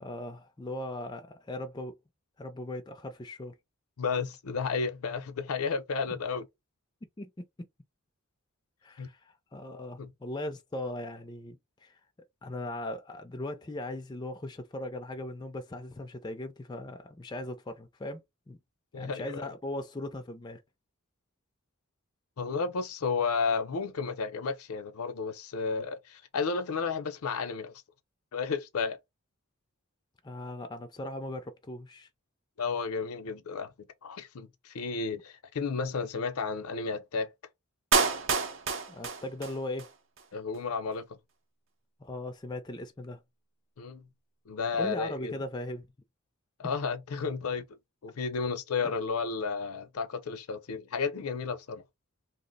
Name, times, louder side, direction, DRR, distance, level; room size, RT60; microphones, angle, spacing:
voice 1, 0.0-2.0 2.4-3.5 7.2-7.3 8.8-12.0 12.4-18.2 18.5-18.6 18.9-20.6 30.2-32.1 38.9-39.9 42.0-43.2 44.8-45.9, left 1 dB, 20° left, 0.3 m, -38 dB
voice 2, 4.0-6.5 9.0-9.1 10.0-10.1 18.9-19.3 22.4-27.7 28.3-29.0 32.6-37.3 40.3-41.1 43.8-44.0 44.5-45.3 46.6-47.6 48.0-51.8, left 5 dB, 80° left, 0.5 m, -32 dB
Clapping, 37.9-39.9 40.2-40.3, right 5 dB, 60° right, 0.6 m, -28 dB
2.8 x 2.0 x 3.9 m
head